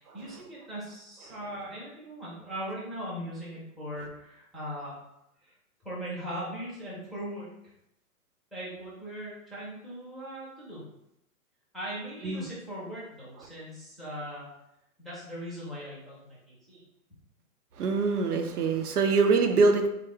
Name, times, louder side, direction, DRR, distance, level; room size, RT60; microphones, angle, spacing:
voice 1, 0.0-4.9 5.4-5.5 5.8-7.5 8.5-10.9 11.7-14.5 15.0-16.8, equal, ahead, -8 dB, 0.6 m, -39 dB
voice 2, 17.8-19.9, right 4 dB, 80° right, 6 dB, 0.7 m, -24 dB
3.5 x 2.4 x 3.3 m, 0.83 s
hypercardioid pair, 125°, 45 cm